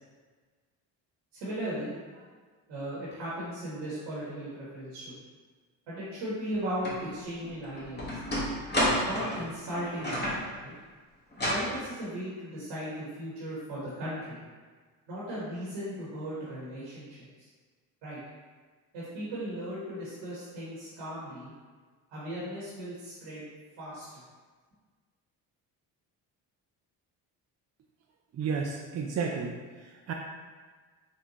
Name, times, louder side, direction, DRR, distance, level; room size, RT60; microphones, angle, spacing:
voice 1, 1.3-2.2 2.7-5.2 5.9-8.2 9.1-10.7 11.4-14.4 15.1-17.5 18.0-18.2 18.9-21.5 22.1-23.5 23.8-24.2, equal, 75° right, -9 dB, 1.3 m, -37 dB
sound 1, 6.8-7.0 7.4-10.5 11.3-11.7, equal, 20° left, 1.3 m, -30 dB
voice 2, 28.4-29.6 30.1-30.2, right 5 dB, 40° right, 0 dB, 0.4 m, -31 dB
4.1 x 2.2 x 2.9 m, 1.5 s
supercardioid pair, 60°, 45 cm